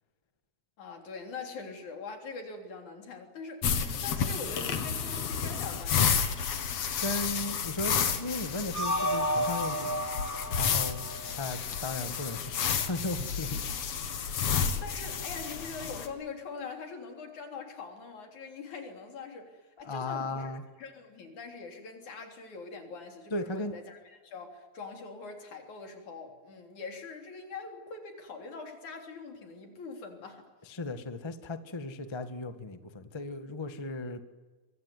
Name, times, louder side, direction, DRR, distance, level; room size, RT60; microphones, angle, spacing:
voice 1, 0.8-6.3 14.5-20.5 20.8-30.5, left 4 dB, 80° left, 4 dB, 4.9 m, -43 dB
sound 1, 3.6-16.1, left 7 dB, 60° left, 2.8 m, -31 dB
voice 2, 7.0-10.1 10.6-11.0 11.3-13.6 19.8-20.6 23.3-23.7 30.7-34.2, left 2 dB, 25° left, 9 dB, 0.5 m, -36 dB
sound 2, 8.7-11.9, equal, 5° left, 1.5 m, -32 dB
23.5 x 23.0 x 9.6 m, 1.4 s
omnidirectional pair, 3.3 m